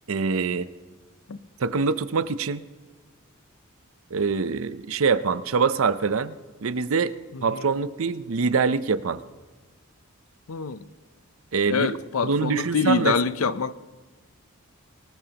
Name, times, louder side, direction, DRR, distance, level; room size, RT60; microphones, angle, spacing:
voice 1, 0.1-0.7 1.6-2.6 4.1-6.4 6.6-7.1 7.4-9.2 11.5-11.9 12.2-13.1, right 5 dB, 70° right, 0.6 m, -24 dB
voice 2, 7.3-7.6 10.5-10.9 11.7-13.7, left 5 dB, 80° left, 0.6 m, -25 dB
24.0 x 18.0 x 2.9 m
head